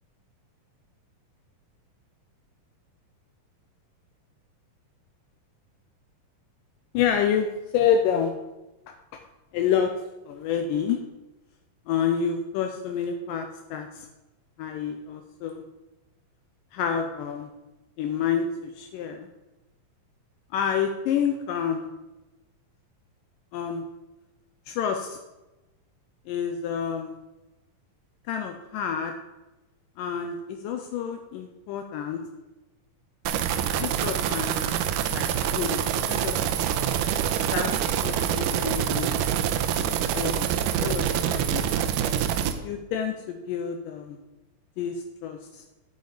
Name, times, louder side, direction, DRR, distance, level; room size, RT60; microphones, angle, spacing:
voice 1, 6.9-7.5 7.7-8.4 9.5-9.9 10.3-11.0 11.9-14.1 14.6-15.6 16.7-17.5 18.0-19.3 20.5-21.9 23.5-23.8 24.7-25.2 26.3-27.2 28.3-29.1 30.0-32.2 33.7-34.8 35.1-35.3 35.5-35.8 36.1-36.5 37.4-39.1 40.1-40.5 40.8-41.7 42.6-44.2 44.8-45.6, left 7 dB, 80° left, 5 dB, 2.2 m, -28 dB
sound 1, 33.3-42.5, right 9 dB, 80° right, 2.1 m, -26 dB
9.5 x 8.1 x 4.9 m, 1.0 s
omnidirectional pair, 4.0 m